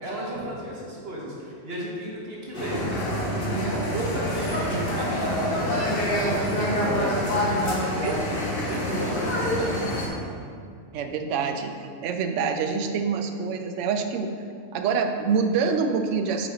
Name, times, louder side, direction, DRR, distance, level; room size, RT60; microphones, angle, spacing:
voice 1, 0.0-3.1 3.9-8.4 8.6-10.1, right 1 dB, 50° right, -4 dB, 1.3 m, -34 dB
sound 1, 2.5-10.1, equal, 50° left, 1.1 m, -26 dB
voice 2, 3.5-3.9 6.7-7.0 8.0-8.2 10.9-14.3 14.7-16.5, right 5 dB, 70° right, 6 dB, 0.9 m, -26 dB
5.9 x 4.2 x 4.9 m, 2.2 s
omnidirectional pair, 1.3 m